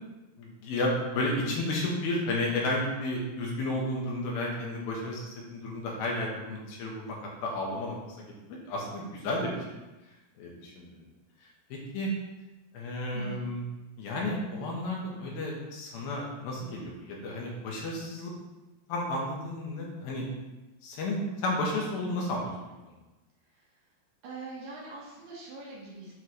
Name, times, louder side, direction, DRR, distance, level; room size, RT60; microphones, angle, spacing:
voice 1, 0.4-7.2 7.4-9.5 10.4-11.1 11.7-12.1 12.7-13.6 14.0-18.3 18.9-20.3 20.8-22.5 22.9-23.0, left 1 dB, 70° left, -2 dB, 2.9 m, -32 dB
voice 2, 13.1-13.5 24.2-26.1, right 3 dB, 65° right, -5 dB, 2.8 m, -42 dB
8.2 x 6.3 x 3.2 m, 1.1 s
omnidirectional pair, 4.7 m